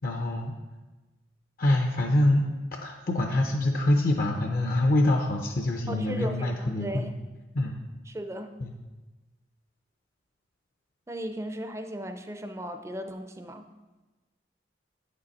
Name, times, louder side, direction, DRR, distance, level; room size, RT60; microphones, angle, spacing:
voice 1, 0.0-0.5 1.6-7.1 7.5-7.8 8.6-8.7, left 1 dB, 50° left, 3 dB, 0.5 m, -25 dB
voice 2, 5.9-7.1 8.1-8.6 11.1-13.7, right 1 dB, 15° right, 7 dB, 0.4 m, -36 dB
8.4 x 5.2 x 4.1 m, 1.2 s
head